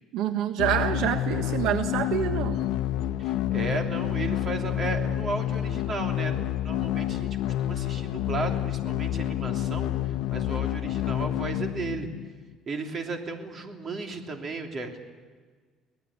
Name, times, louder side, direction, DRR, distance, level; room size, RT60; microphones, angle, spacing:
voice 1, 0.1-2.6, right 10 dB, 75° right, 7 dB, 1.3 m, -27 dB
sound 1, 0.6-12.5, left 12 dB, 75° left, 0.9 m, -29 dB
voice 2, 3.2-12.1 12.7-15.0, right 3 dB, 35° right, 3 dB, 3.1 m, -35 dB
24.5 x 19.0 x 8.5 m, 1.5 s
cardioid pair, 145°, 0 cm